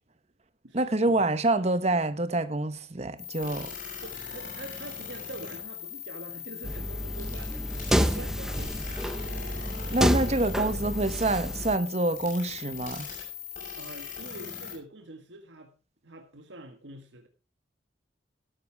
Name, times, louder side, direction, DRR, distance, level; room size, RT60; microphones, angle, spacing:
voice 1, 0.7-3.7 9.9-13.1, right 2 dB, 35° right, 1.1 m, -26 dB
sound 1, 3.2-14.7, left 7 dB, 45° left, 6.0 m, -40 dB
voice 2, 4.0-9.0 13.8-15.7 16.0-17.3, right 2 dB, 80° right, 1.6 m, -45 dB
sound 2, 6.6-11.8, equal, 5° right, 0.6 m, -29 dB
13.0 x 12.5 x 3.4 m
head